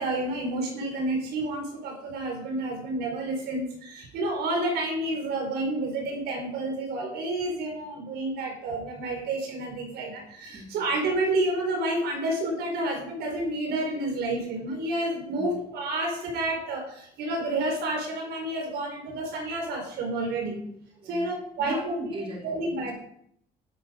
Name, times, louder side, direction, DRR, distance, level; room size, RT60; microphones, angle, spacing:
voice 1, 0.0-20.7 21.0-21.9 22.4-22.9, right 2 dB, 75° right, 2 dB, 4.4 m, -30 dB
voice 2, 10.5-10.9 15.3-15.6 21.0-21.3 21.6-22.9, right 2 dB, 35° right, 0 dB, 2.8 m, -39 dB
11.5 x 8.8 x 5.1 m, 0.71 s
cardioid pair, 110°, 17 cm